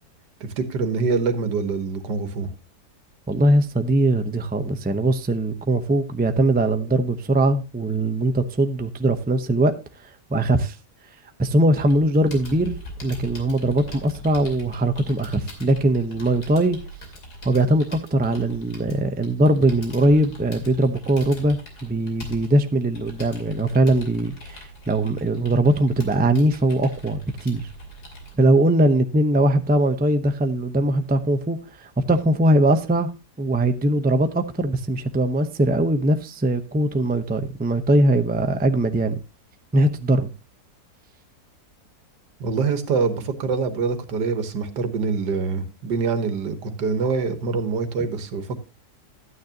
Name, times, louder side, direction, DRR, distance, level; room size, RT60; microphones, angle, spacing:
voice 1, 0.4-2.5 42.4-48.6, right 4 dB, 90° right, 1.8 m, -25 dB
voice 2, 3.3-9.7 10.3-10.8 11.4-16.8 17.4-27.7 28.4-33.1 33.4-39.1 39.7-40.3, right 1 dB, 15° right, 0.4 m, -21 dB
Computer keyboard, 11.8-28.3, equal, 70° left, 3.3 m, -41 dB
12.5 x 9.3 x 2.8 m
omnidirectional pair, 1.8 m